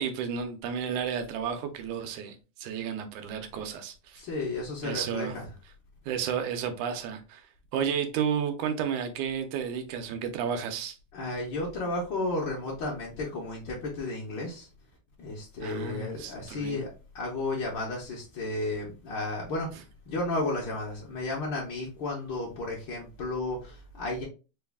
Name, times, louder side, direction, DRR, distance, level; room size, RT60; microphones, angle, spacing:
voice 1, 0.0-4.2 4.8-5.3 6.1-7.4 7.7-11.0 15.6-16.8, right 7 dB, 85° right, 2.1 m, -32 dB
voice 2, 4.2-5.5 11.1-14.7 15.2-16.9 17.1-24.2, left 2 dB, 75° left, 1.0 m, -33 dB
4.7 x 2.3 x 3.4 m
omnidirectional pair, 3.3 m